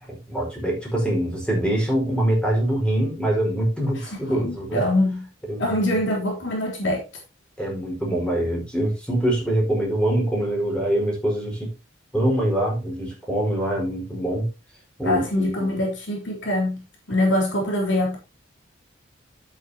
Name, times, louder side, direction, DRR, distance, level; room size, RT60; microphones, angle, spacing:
voice 1, 0.1-4.8 5.5-6.0 7.6-11.7 12.1-14.5 15.0-15.8, right 1 dB, 5° left, 5.0 m, -24 dB
voice 2, 4.0-5.3 5.6-7.1 15.0-18.2, left 1 dB, 65° left, 3.8 m, -24 dB
11.0 x 8.6 x 2.9 m
head